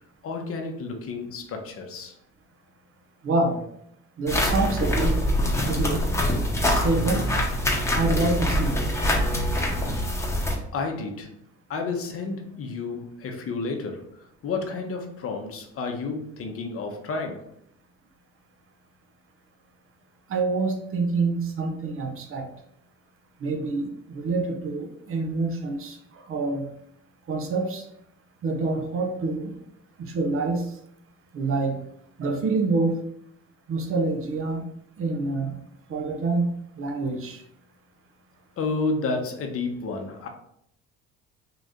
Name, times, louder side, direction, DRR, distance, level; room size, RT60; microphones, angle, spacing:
voice 1, 0.2-2.1 10.7-11.3 11.7-14.1 14.4-17.4 38.6-40.3, left 3 dB, 45° left, 4 dB, 0.8 m, -31 dB
voice 2, 3.2-3.6 4.2-5.2 5.7-6.0 6.6-7.3 7.9-8.8 20.3-22.5 23.4-26.0 26.3-26.7 27.3-27.8 28.4-29.5 30.1-30.6 31.3-31.8 32.2-33.0 33.7-34.6 35.0-35.5 35.9-36.5 36.8-37.4, right 3 dB, 45° right, 4 dB, 0.8 m, -26 dB
sound 1, 4.3-10.6, equal, 10° left, 1.1 m, -24 dB
3.8 x 2.5 x 3.5 m, 0.72 s
cardioid pair, 100°, 31 cm